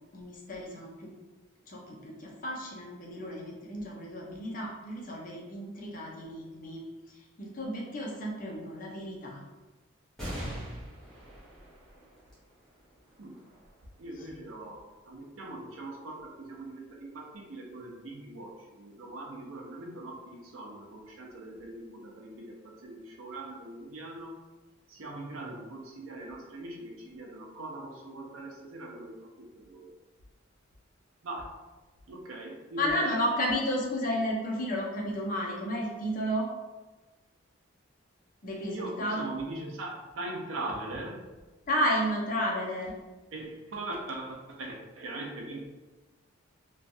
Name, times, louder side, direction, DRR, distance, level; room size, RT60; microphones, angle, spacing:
voice 1, 0.1-1.1 1.7-6.8 7.1-9.4 14.2-14.3 32.8-36.5 38.4-39.2 41.7-42.9, equal, 40° left, -2 dB, 0.6 m, -32 dB
sound 1, 10.2-17.1 17.7-17.8 18.9-19.5, equal, 5° left, 0.8 m, -45 dB
voice 2, 14.0-24.3 24.9-29.9 31.2-31.5 32.1-33.2 38.7-41.2 43.3-45.6, right 2 dB, 85° right, -1 dB, 0.6 m, -41 dB
3.0 x 2.3 x 2.6 m, 1.2 s
head